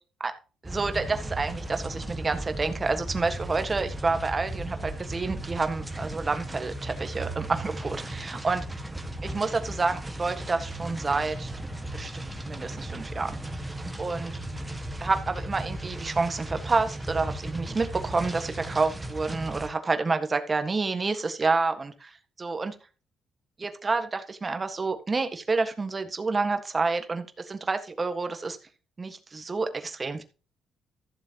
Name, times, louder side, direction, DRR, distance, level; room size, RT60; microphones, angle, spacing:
sound 1, 0.6-19.7, right 1 dB, 10° right, 1.7 m, -36 dB
voice 1, 0.6-8.6 9.2-11.5 11.9-13.7 14.0-14.4 15.0-22.1 22.4-22.7 23.6-28.6 29.0-30.2, right 3 dB, 30° right, 8 dB, 1.6 m, -29 dB
14.5 x 7.5 x 3.0 m, 0.34 s
cardioid pair, 90°, 0 cm